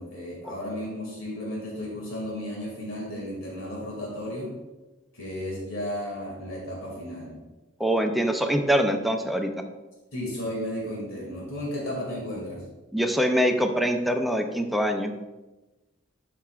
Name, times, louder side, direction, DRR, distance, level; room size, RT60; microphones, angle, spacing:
voice 1, 0.0-4.5 5.1-7.3 10.1-12.6, left 1 dB, 75° left, -4 dB, 2.2 m, -34 dB
voice 2, 7.8-9.5 12.9-15.1, equal, ahead, 4 dB, 0.5 m, -24 dB
12.0 x 5.7 x 2.4 m, 1.1 s
head